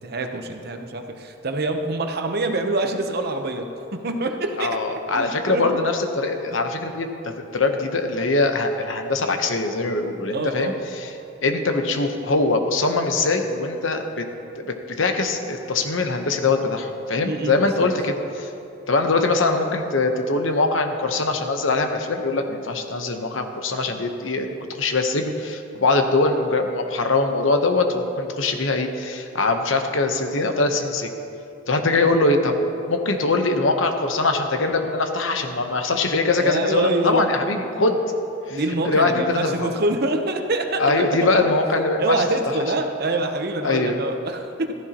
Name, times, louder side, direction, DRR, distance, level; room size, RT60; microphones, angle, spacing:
voice 1, 0.0-4.8 5.1-5.8 6.5-6.6 10.3-10.8 17.2-17.9 31.8-31.9 36.4-37.3 38.5-41.3 42.0-44.7, right 2 dB, 55° right, 5 dB, 0.9 m, -25 dB
voice 2, 4.6-11.1 11.4-14.3 14.6-18.5 18.9-24.5 24.7-31.1 31.7-32.6 32.9-38.0 38.5-38.6 38.8-39.7 40.8-42.2 43.6-44.0, left 3 dB, 80° left, 5 dB, 1.0 m, -22 dB
15.0 x 14.0 x 3.0 m, 2.7 s
head